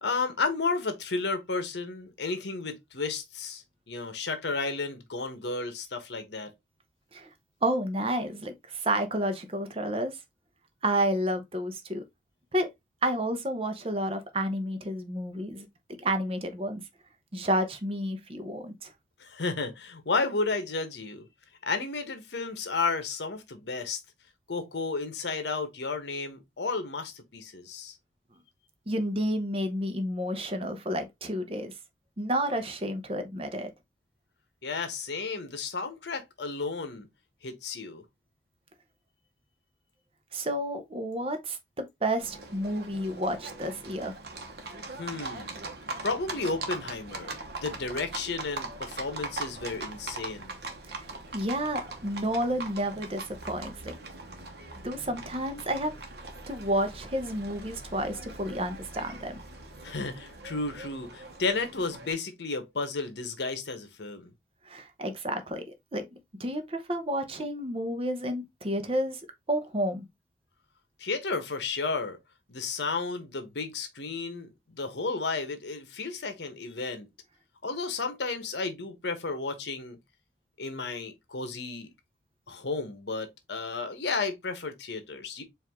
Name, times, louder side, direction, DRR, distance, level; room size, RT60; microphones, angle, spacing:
voice 1, 0.0-6.5 19.2-21.3 21.6-24.0 24.5-27.9 34.6-37.1 37.4-38.0 45.0-45.5 46.0-50.5 59.8-64.3 71.0-72.2 72.5-77.1 77.6-80.0 80.6-81.9 82.5-85.4, left 3 dB, 75° left, 1.0 m, -32 dB
voice 2, 7.6-10.2 10.8-12.0 12.5-12.7 13.0-15.7 16.0-16.8 17.3-18.9 28.9-31.7 32.2-33.7 40.3-44.2 50.9-51.1 51.3-53.9 54.8-55.9 56.5-59.4 64.6-65.6 65.9-66.1 66.4-69.2 69.5-70.0, right 1 dB, 30° right, 0.7 m, -30 dB
Livestock farm animals working animals, 42.2-62.1, right 3 dB, 65° right, 1.0 m, -41 dB
4.6 x 2.6 x 3.5 m
head